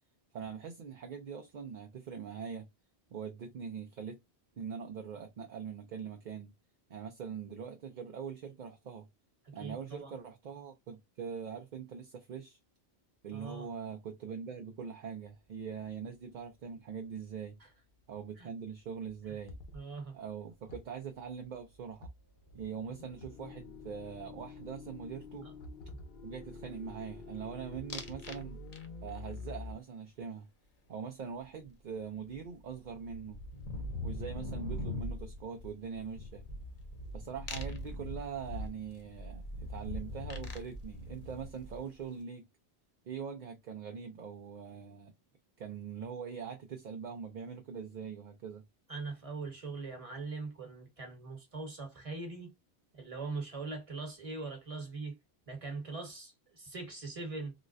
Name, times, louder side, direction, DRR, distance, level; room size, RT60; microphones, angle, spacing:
voice 1, 0.3-2.7 3.1-4.2 4.6-6.5 6.9-9.1 9.5-12.6 13.2-17.6 18.1-19.6 20.1-22.1 22.5-25.5 26.2-28.6 29.0-30.5 30.9-33.4 34.0-36.4 37.1-42.5 43.1-45.1 45.6-48.6, right 7 dB, 55° right, 0.6 m, -42 dB
voice 2, 9.6-10.1 13.3-13.7 18.4-18.5 19.3-19.4 19.7-20.2 48.9-52.5 52.9-55.2 55.5-57.5, right 3 dB, 30° right, 1.3 m, -41 dB
sound 1, 17.7-17.8 18.0-18.2 18.7-18.8 19.1-20.0 20.5-29.7, left 3 dB, 65° left, 1.0 m, -48 dB
sound 2, 27.9-28.4 28.7-29.2 31.6-31.7 32.0-42.0, left 1 dB, 40° left, 0.8 m, -42 dB
3.9 x 2.1 x 2.5 m
omnidirectional pair, 1.1 m